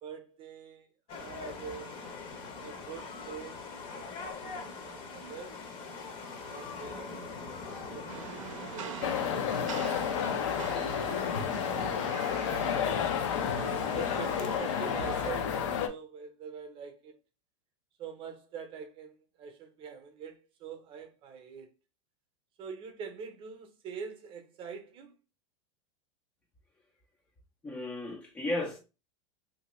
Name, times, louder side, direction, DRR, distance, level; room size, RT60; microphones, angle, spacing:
voice 1, 0.0-2.0 2.6-5.6 6.3-7.4 7.9-8.4 8.7-11.5 13.5-17.2 18.0-21.7 22.6-25.1, right 6 dB, 35° right, 0.6 m, -45 dB
sound 1, 1.1-14.6, left 4 dB, 35° left, 0.7 m, -43 dB
Rain, 8.1-15.3, right 8 dB, 85° right, 0.5 m, -44 dB
sound 2, 9.0-15.9, left 8 dB, 75° left, 0.5 m, -31 dB
voice 2, 27.6-28.8, left 1 dB, 10° left, 0.3 m, -34 dB
2.8 x 2.6 x 3.0 m
supercardioid pair, 130°, 16 cm